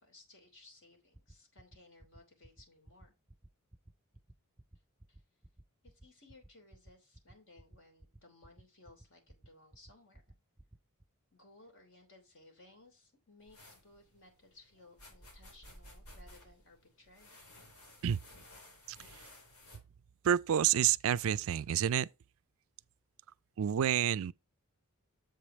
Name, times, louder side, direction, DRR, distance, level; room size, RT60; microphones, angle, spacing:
voice 1, 0.0-3.1 5.1-5.2 5.8-10.3 11.3-17.4, left 2 dB, 60° left, 3.1 m, -61 dB
sound 1, 1.1-11.0, right 1 dB, 10° right, 0.5 m, -56 dB
sound 2, 13.4-19.8, left 1 dB, 80° left, 3.5 m, -56 dB
voice 2, 20.2-22.1 23.6-24.3, right 9 dB, 70° right, 0.4 m, -28 dB
7.7 x 5.0 x 4.3 m
head